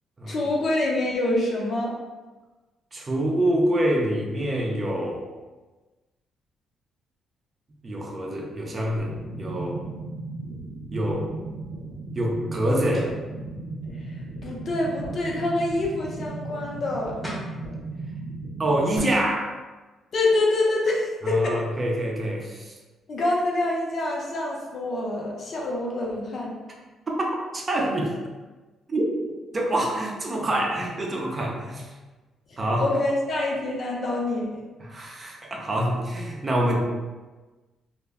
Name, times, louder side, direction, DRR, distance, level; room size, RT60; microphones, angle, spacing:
voice 1, 0.3-1.9 14.4-17.3 20.1-21.5 23.1-26.5 32.5-34.6, left 2 dB, 50° left, -2 dB, 0.6 m, -26 dB
voice 2, 2.9-5.2 7.8-9.8 10.9-11.3 12.2-13.1 18.6-19.5 21.2-22.7 27.1-28.2 28.9-29.1 29.5-31.9 32.6-32.9 34.8-36.8, right 1 dB, 30° right, -1 dB, 0.5 m, -26 dB
sound 1, 9.0-19.0, right 2 dB, 85° right, 0.7 m, -36 dB
sound 2, 12.9-13.2 16.9-17.0 17.2-17.6, equal, 10° left, 0.8 m, -36 dB
2.2 x 2.0 x 3.4 m, 1.2 s
cardioid pair, 90°, 0 cm